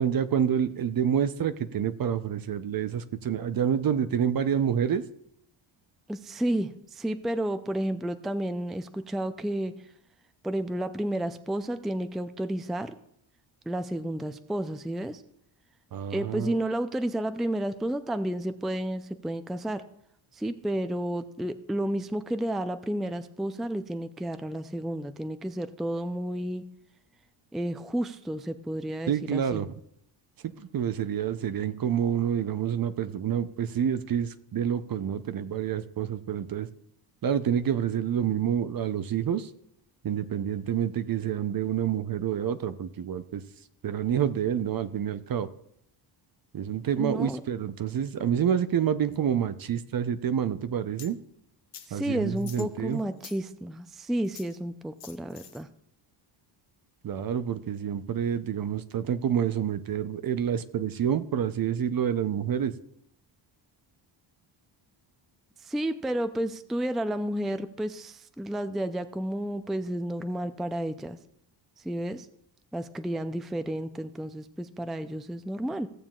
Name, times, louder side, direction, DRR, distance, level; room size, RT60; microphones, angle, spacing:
voice 1, 0.0-5.0 15.9-16.6 29.1-29.7 30.6-36.7 37.2-39.5 40.0-43.4 43.8-45.5 46.5-51.2 51.9-53.0 57.0-62.7, right 8 dB, 50° right, 12 dB, 0.7 m, -28 dB
voice 2, 6.1-9.7 10.4-12.9 13.7-15.2 16.1-19.8 20.3-26.6 27.5-29.6 47.0-47.4 51.9-55.7 65.6-71.2 71.8-72.3 72.7-75.9, right 1 dB, ahead, 10 dB, 0.4 m, -31 dB
sound 1, 51.0-51.1 51.7-51.9 52.4-53.4 54.2-54.6 55.0-55.6, left 8 dB, 60° left, 1.1 m, -46 dB
16.0 x 7.2 x 2.4 m, 0.73 s
cardioid pair, 85°, 46 cm